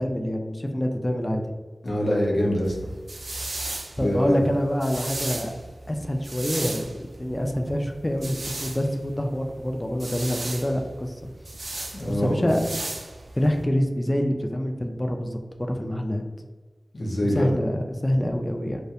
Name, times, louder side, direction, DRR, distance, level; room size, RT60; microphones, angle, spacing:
voice 1, 0.0-1.5 4.0-5.5 5.9-6.9 7.2-11.2 12.1-12.8 13.4-15.4 15.7-16.2 17.3-18.8, equal, 25° left, 3 dB, 0.3 m, -26 dB
voice 2, 1.8-2.7 4.0-4.4 11.9-12.5 16.9-17.5, equal, 70° left, -3 dB, 0.6 m, -24 dB
sound 1, 2.6-13.6, right 2 dB, 85° right, 0.4 m, -36 dB
2.3 x 2.1 x 2.7 m, 1.3 s
wide cardioid pair, 55°, 0 cm